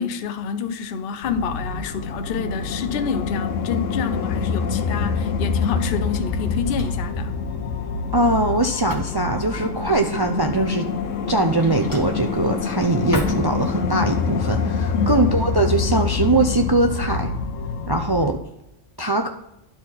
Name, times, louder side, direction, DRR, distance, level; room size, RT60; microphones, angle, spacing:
voice 1, 0.0-7.3 14.9-15.3, left 6 dB, 55° left, 0.8 m, -27 dB
sound 1, 1.2-18.4, left 5 dB, 80° left, 1.2 m, -26 dB
Drawer open or close, 5.9-14.1, left 1 dB, 15° left, 1.2 m, -37 dB
voice 2, 8.1-10.9 11.3-17.3 17.9-18.4 19.0-19.3, right 2 dB, 40° right, 0.3 m, -21 dB
11.5 x 4.2 x 4.1 m
omnidirectional pair, 1.3 m